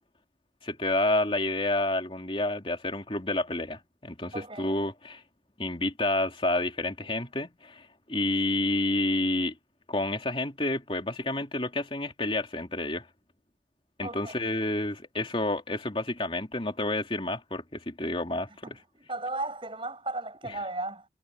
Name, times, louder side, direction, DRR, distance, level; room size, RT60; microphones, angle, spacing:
voice 1, 0.6-5.2 5.6-9.5 9.9-13.1 14.0-18.8, left 2 dB, 30° left, 3.0 m, -29 dB
voice 2, 4.3-4.7 14.0-14.3 18.6-21.1, right 2 dB, 30° right, 7.6 m, -35 dB
head